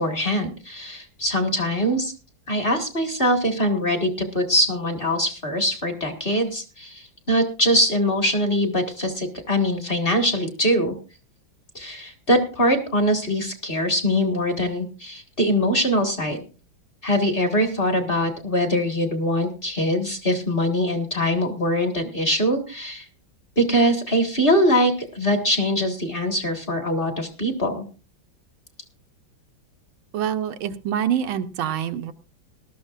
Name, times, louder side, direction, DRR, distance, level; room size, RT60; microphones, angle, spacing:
voice 1, 0.0-2.1 2.5-10.9 11.7-16.4 17.0-23.0 23.6-27.8, equal, 30° left, 5 dB, 1.6 m, -22 dB
voice 2, 30.1-32.1, right 9 dB, 85° right, 8 dB, 1.7 m, -26 dB
19.0 x 12.5 x 2.4 m, 0.35 s
omnidirectional pair, 2.2 m